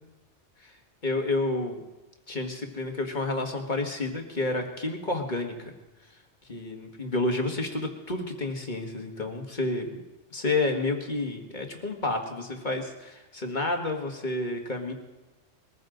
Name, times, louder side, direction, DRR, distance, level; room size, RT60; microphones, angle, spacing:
voice 1, 1.0-1.8 2.3-5.7 6.5-10.0 10.3-14.9, left 2 dB, 40° left, 3 dB, 1.8 m, -30 dB
21.5 x 15.0 x 3.9 m, 1.1 s
omnidirectional pair, 1.3 m